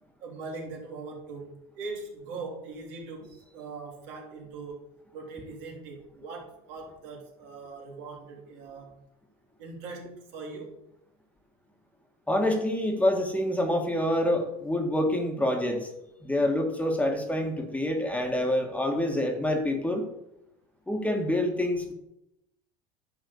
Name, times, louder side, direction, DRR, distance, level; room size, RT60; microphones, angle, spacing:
voice 1, 0.2-4.9 5.1-9.0 9.6-10.7, right 3 dB, 70° right, -1 dB, 3.2 m, -41 dB
voice 2, 12.3-15.9 16.2-20.1 20.9-21.9, left 1 dB, 5° left, 3 dB, 1.8 m, -27 dB
10.5 x 4.0 x 7.0 m, 0.84 s
supercardioid pair, 100°, 18 cm